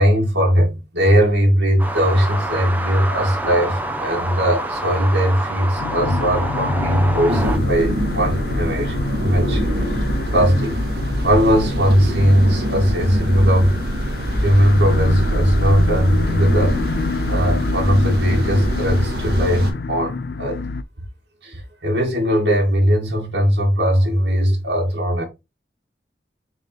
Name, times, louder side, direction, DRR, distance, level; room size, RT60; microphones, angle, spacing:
voice 1, 0.0-10.1 10.3-10.7 11.2-13.8 14.3-16.8 17.3-20.6 21.4-25.2, equal, 85° right, 2.4 m, -19 dB
sound 1, 1.8-7.6, right 1 dB, 10° right, 0.8 m, -27 dB
sound 2, 5.8-20.8, left 3 dB, 60° left, 0.4 m, -28 dB
sound 3, 7.3-19.7, equal, 65° right, 1.7 m, -24 dB
6.8 x 4.0 x 3.5 m
head